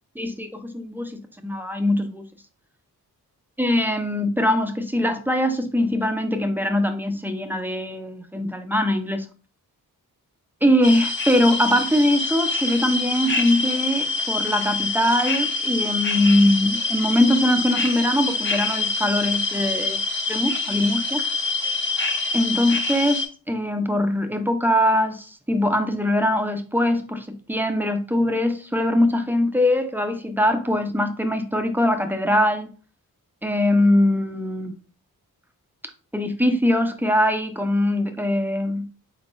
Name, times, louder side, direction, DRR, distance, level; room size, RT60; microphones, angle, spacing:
voice 1, 0.2-2.2 3.6-9.3 10.6-20.0 20.3-21.2 22.3-32.7 33.4-34.7 36.1-38.9, left 1 dB, 5° right, 0.6 m, -22 dB
sound 1, 10.8-23.3, left 3 dB, 30° left, 0.9 m, -25 dB
3.8 x 3.6 x 2.6 m
cardioid pair, 60°, 37 cm